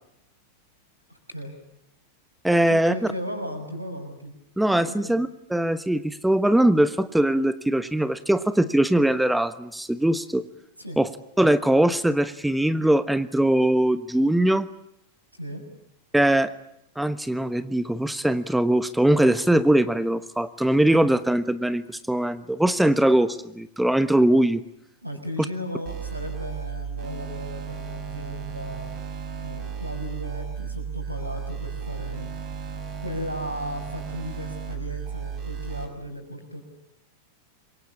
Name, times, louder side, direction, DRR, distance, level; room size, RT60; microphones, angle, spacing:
voice 1, 1.1-1.5 2.7-4.3 4.7-5.1 10.8-11.0 15.4-15.6 25.0-28.9 29.4-32.3 32.9-36.6, equal, 85° right, 6 dB, 6.4 m, -35 dB
voice 2, 2.4-2.9 4.6-10.4 11.0-11.1 11.4-14.7 16.1-16.5 17.0-24.6, right 1 dB, 5° right, 13 dB, 1.2 m, -21 dB
sound 1, 25.9-35.9, right 7 dB, 35° right, 6.8 m, -34 dB
27.5 x 23.5 x 8.6 m, 0.77 s
figure-of-eight pair, 90°, 0 cm